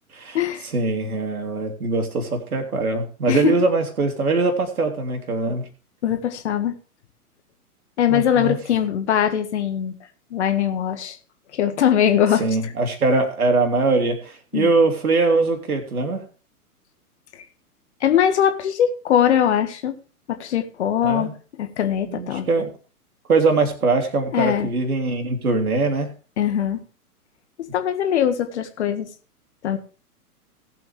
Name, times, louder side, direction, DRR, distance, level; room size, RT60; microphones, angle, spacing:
voice 1, 0.6-5.7 8.1-8.6 12.4-16.3 21.0-21.3 22.0-22.7 23.3-26.1, right 3 dB, 70° right, 4 dB, 3.3 m, -22 dB
voice 2, 6.0-6.7 8.0-9.9 10.3-11.2 11.5-12.4 14.5-14.7 18.0-19.9 20.3-21.3 21.6-22.5 24.3-24.7 26.4-26.8 27.7-29.1 29.6-29.8, left 9 dB, 45° left, 8 dB, 1.9 m, -21 dB
18.5 x 7.8 x 3.5 m, 0.37 s
figure-of-eight pair, 115°, 46 cm